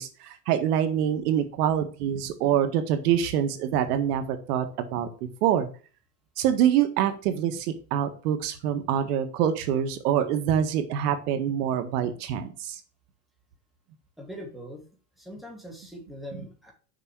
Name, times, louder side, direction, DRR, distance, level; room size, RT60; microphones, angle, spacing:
voice 1, 0.0-5.1 5.4-5.7 6.4-12.8, right 9 dB, 75° right, 8 dB, 1.7 m, -25 dB
voice 2, 14.2-14.8 15.2-16.7, equal, ahead, 0 dB, 2.6 m, -41 dB
6.7 x 5.7 x 4.9 m, 0.37 s
supercardioid pair, 135°, 46 cm